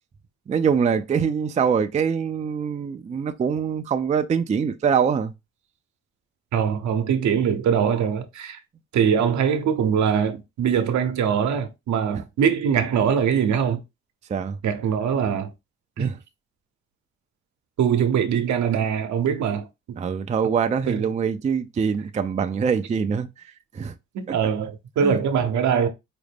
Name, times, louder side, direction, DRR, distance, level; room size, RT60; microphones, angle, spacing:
voice 1, 0.5-5.3 14.3-14.6 16.0-16.2 20.0-23.9 24.3-24.4 25.0-25.2, right 6 dB, 25° right, 0.4 m, -24 dB
voice 2, 6.5-8.6 8.9-13.8 14.6-15.5 16.0-16.2 17.8-19.7 20.9-21.1 24.1-25.9, right 7 dB, 70° right, 0.8 m, -22 dB
4.9 x 2.1 x 3.3 m
cardioid pair, 90°, 30 cm